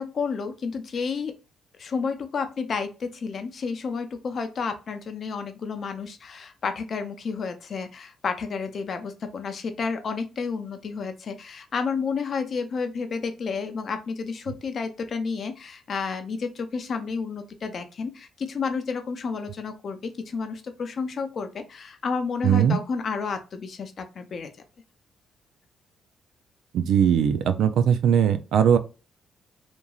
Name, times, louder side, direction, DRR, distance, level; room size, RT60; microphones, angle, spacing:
voice 1, 0.0-1.3 1.8-24.5, left 5 dB, 50° left, 0.5 m, -31 dB
voice 2, 22.4-22.8 26.7-28.8, right 8 dB, 75° right, 0.3 m, -20 dB
2.9 x 2.5 x 2.3 m
cardioid pair, 90°, 0 cm